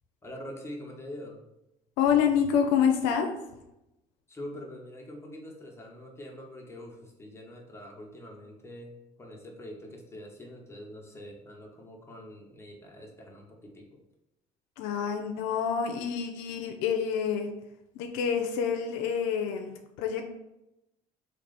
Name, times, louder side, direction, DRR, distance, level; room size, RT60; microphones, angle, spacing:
voice 1, 0.2-1.4 4.3-14.0, left 1 dB, 15° left, -1 dB, 1.1 m, -44 dB
voice 2, 2.0-3.3 14.8-17.5 17.9-20.3, left 7 dB, 80° left, 4 dB, 0.5 m, -27 dB
3.2 x 3.1 x 4.0 m, 0.91 s
supercardioid pair, 75°, 17 cm